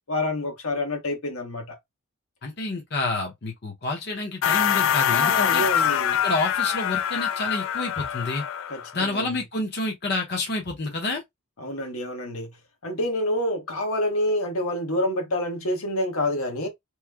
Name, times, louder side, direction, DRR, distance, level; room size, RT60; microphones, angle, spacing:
voice 1, 0.1-1.8 5.1-6.2 8.7-9.3 11.6-12.5 12.8-16.7, left 1 dB, 90° left, 1.1 m, -27 dB
voice 2, 2.4-5.6 6.2-8.4 8.9-11.2, left 2 dB, 50° left, 0.8 m, -29 dB
sound 1, 4.4-8.9, left 9 dB, 70° left, 0.3 m, -24 dB
3.1 x 2.0 x 3.4 m
head